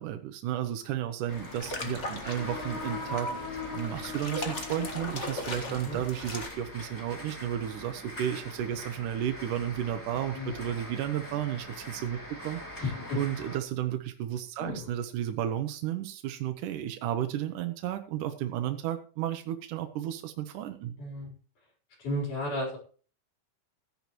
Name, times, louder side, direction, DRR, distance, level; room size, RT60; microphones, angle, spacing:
voice 1, 0.0-3.3 3.7-12.6 13.2-21.0, right 11 dB, 85° right, 7 dB, 2.4 m, -33 dB
sound 1, 1.3-6.5, left 2 dB, 30° left, 1.5 m, -38 dB
sound 2, 1.3-13.6, left 1 dB, 5° left, 2.1 m, -44 dB
sound 3, 2.1-5.9, left 3 dB, 55° left, 3.9 m, -40 dB
voice 2, 12.8-13.2 14.6-14.9 21.0-21.4 22.0-22.8, left 1 dB, 75° left, -1 dB, 5.8 m, -33 dB
15.5 x 10.5 x 3.1 m, 0.39 s
omnidirectional pair, 3.6 m